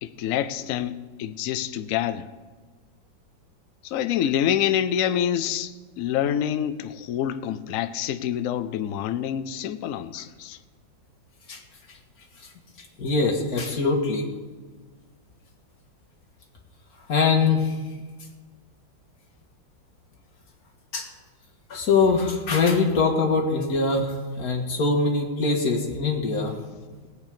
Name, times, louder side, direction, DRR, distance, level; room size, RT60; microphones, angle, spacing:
voice 1, 0.0-2.3 3.8-10.6, left 10 dB, 75° left, 0.7 m, -27 dB
voice 2, 12.8-14.2 17.1-17.8 20.9-21.1 21.7-26.5, left 4 dB, 50° left, 2.1 m, -23 dB
18.0 x 8.4 x 5.2 m
omnidirectional pair, 2.1 m